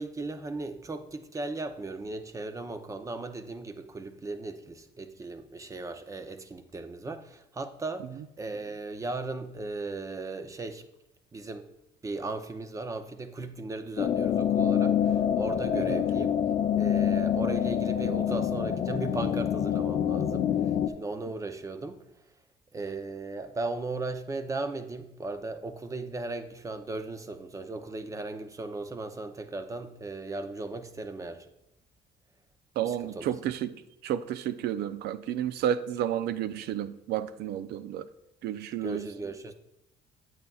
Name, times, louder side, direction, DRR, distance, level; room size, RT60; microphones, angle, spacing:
voice 1, 0.0-8.1 8.4-10.8 11.3-11.6 12.0-16.3 16.8-22.0 22.7-31.5 32.8-33.3 38.8-39.5, right 3 dB, 20° right, 0.7 m, -37 dB
sound 1, 14.0-20.9, left 9 dB, 45° left, 0.6 m, -26 dB
voice 2, 32.8-33.7 34.0-38.0 38.4-39.0, right 10 dB, 75° right, 0.5 m, -31 dB
9.1 x 8.4 x 2.4 m
cardioid pair, 110°, 17 cm